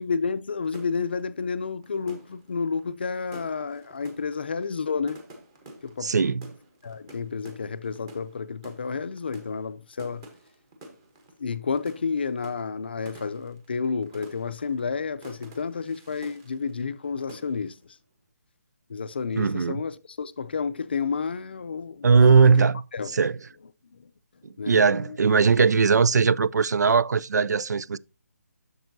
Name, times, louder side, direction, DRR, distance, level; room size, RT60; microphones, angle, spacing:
voice 1, 0.0-5.2 5.8-6.1 6.8-10.3 11.4-18.0 18.9-22.6 22.9-23.2 23.9-24.1 24.6-25.2, left 5 dB, 40° left, 0.5 m, -31 dB
sound 1, 0.6-17.0 17.3-17.8, right 1 dB, 15° right, 1.0 m, -49 dB
voice 2, 6.0-6.4 19.4-19.8 22.0-22.8 23.1-23.3 24.7-28.0, right 5 dB, 90° right, 0.4 m, -19 dB
10.5 x 6.7 x 2.7 m
hypercardioid pair, 175°, 9 cm